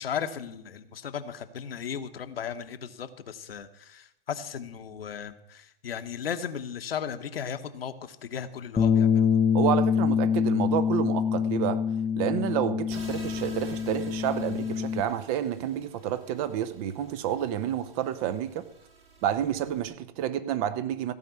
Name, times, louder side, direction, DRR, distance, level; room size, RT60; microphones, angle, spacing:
voice 1, 0.0-9.3, left 8 dB, 75° left, 1.1 m, -36 dB
Bass guitar, 8.8-15.0, left 7 dB, 10° left, 0.6 m, -25 dB
voice 2, 9.5-11.8 12.2-18.7 19.2-21.1, right 10 dB, 40° right, 0.9 m, -29 dB
sound 1, 12.9-19.9, right 4 dB, 75° right, 3.3 m, -49 dB
15.0 x 5.2 x 8.2 m
figure-of-eight pair, 110°, 30 cm